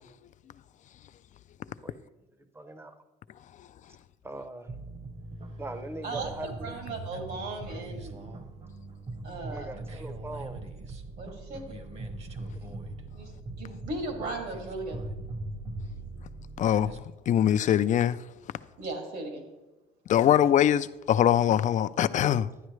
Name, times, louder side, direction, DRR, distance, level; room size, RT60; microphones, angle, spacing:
voice 1, 1.8-2.1 2.4-3.0 4.2-4.7 5.6-6.8 9.4-10.7 12.6-12.7 17.9-18.0, right 2 dB, 15° right, 0.7 m, -41 dB
sound 1, 4.7-17.0, right 2 dB, 40° right, 1.0 m, -41 dB
voice 2, 6.0-8.1 9.2-9.7 11.2-11.8 13.1-13.3 13.6-15.0 18.8-19.4, right 2 dB, 75° right, 2.4 m, -37 dB
voice 3, 16.6-18.2 20.1-22.5, left 10 dB, 45° left, 0.4 m, -23 dB
11.5 x 9.5 x 3.2 m
cardioid pair, 110°, 17 cm